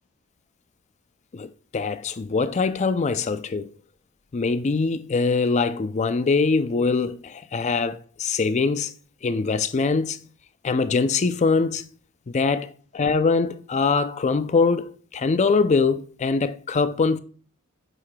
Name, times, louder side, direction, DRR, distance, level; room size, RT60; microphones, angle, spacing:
voice 1, 1.3-3.7 4.3-8.9 9.2-10.3 10.6-11.9 12.3-17.2, left 4 dB, 35° left, 0.4 m, -23 dB
8.0 x 5.6 x 2.2 m
head